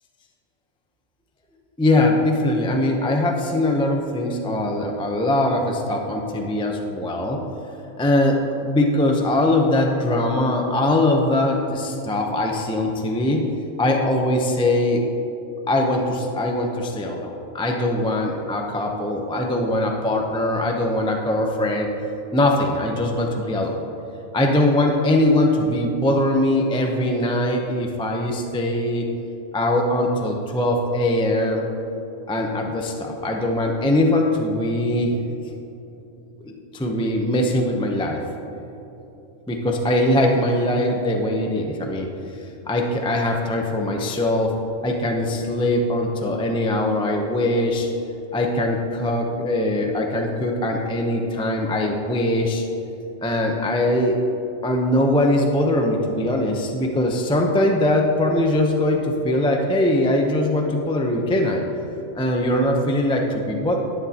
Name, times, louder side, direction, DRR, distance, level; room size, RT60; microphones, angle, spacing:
voice 1, 1.8-7.4 8.0-13.4 13.8-15.1 15.7-21.9 22.3-23.8 24.3-29.1 29.5-31.6 32.3-35.1 36.5-38.2 39.5-42.1 42.7-44.5 44.8-47.9 48.3-52.6 53.2-54.2 54.6-61.6 62.1-63.8, left 1 dB, 5° left, 1 dB, 0.4 m, -21 dB
11.0 x 9.6 x 2.8 m, 2.9 s
omnidirectional pair, 1.3 m